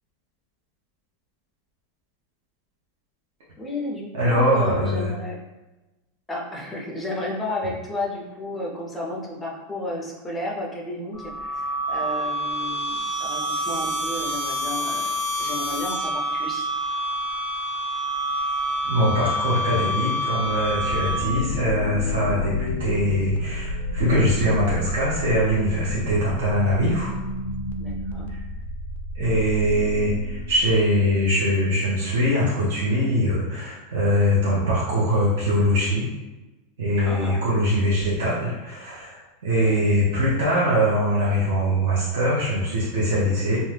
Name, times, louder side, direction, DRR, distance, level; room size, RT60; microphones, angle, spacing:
voice 1, 3.6-5.4 6.3-15.1 15.4-16.7 27.8-28.3 37.0-37.4 39.6-39.8, left 1 dB, 5° left, -2 dB, 0.4 m, -32 dB
voice 2, 4.1-5.1 18.8-27.1 28.3-28.4 29.1-36.1 36.8-43.6, equal, 70° right, -7 dB, 0.8 m, -22 dB
sound 1, 11.1-21.5, equal, 40° right, 1.1 m, -27 dB
sound 2, 20.4-31.0, left 2 dB, 90° left, 0.3 m, -31 dB
2.6 x 2.2 x 3.2 m, 1.1 s
supercardioid pair, 175°, 0 cm